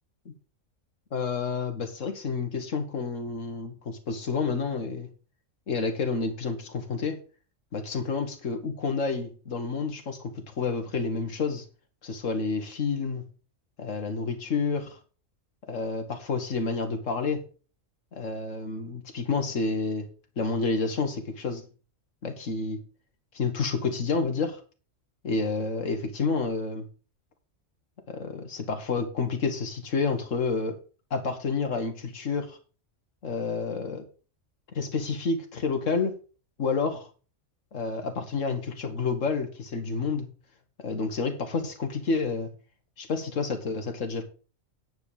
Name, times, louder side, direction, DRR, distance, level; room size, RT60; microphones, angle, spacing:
voice 1, 1.1-5.1 5.7-7.2 7.7-11.7 12.0-13.2 13.8-15.0 15.7-17.4 18.1-20.1 20.4-21.6 22.2-22.8 23.3-24.6 25.2-26.9 28.1-30.8 31.1-32.6 33.2-34.0 34.7-36.2 36.6-37.1 37.7-40.3 40.8-42.5 43.0-44.2, left 4 dB, 80° left, 2.0 m, -29 dB
9.9 x 8.0 x 5.0 m
omnidirectional pair, 1.3 m